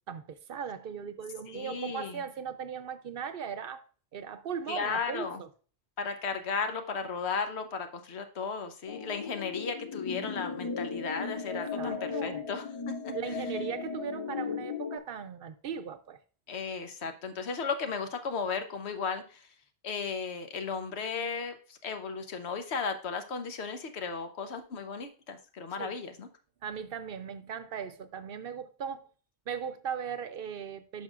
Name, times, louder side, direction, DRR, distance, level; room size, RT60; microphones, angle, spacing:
voice 1, 0.1-3.8 4.1-5.5 11.8-12.4 13.1-16.2 25.8-25.9 26.6-29.1 29.5-31.0, right 7 dB, 65° right, 0.8 m, -38 dB
voice 2, 1.5-2.2 4.7-5.4 6.0-13.4 16.5-19.5 19.8-26.3, left 5 dB, 80° left, 1.2 m, -35 dB
sound 1, 8.9-15.0, left 5 dB, 50° left, 0.3 m, -36 dB
10.0 x 5.6 x 2.4 m
omnidirectional pair, 1.1 m